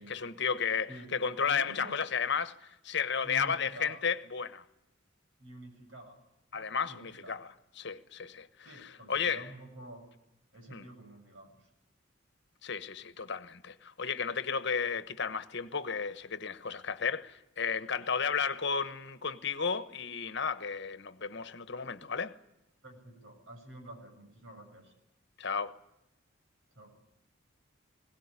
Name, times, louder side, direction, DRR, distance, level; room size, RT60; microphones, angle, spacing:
voice 1, 0.0-2.5 2.8-4.6 6.5-7.5 7.8-9.4 10.7-10.8 12.6-22.3 25.4-25.8, left 6 dB, 60° left, 1.2 m, -33 dB
voice 2, 1.4-2.0 3.2-4.0 5.4-6.2 6.5-7.4 8.6-10.0 10.5-11.7 22.8-24.9 26.7-26.9, right 1 dB, 70° right, 6.6 m, -49 dB
21.5 x 18.0 x 9.8 m
head